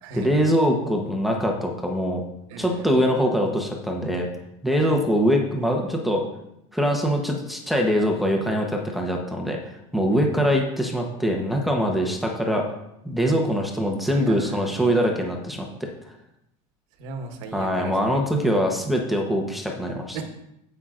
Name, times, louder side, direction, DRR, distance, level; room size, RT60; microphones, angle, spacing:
voice 1, 0.1-2.2 2.6-4.3 4.6-6.2 6.7-12.7 13.0-15.9 17.5-20.2, equal, ahead, 0 dB, 0.9 m, -23 dB
voice 2, 2.5-3.0 4.8-5.0 10.3-10.5 14.1-14.6 17.0-18.2 20.1-20.2, right 3 dB, 60° right, 5 dB, 1.3 m, -37 dB
15.5 x 5.7 x 2.5 m, 0.82 s
supercardioid pair, 155°, 17 cm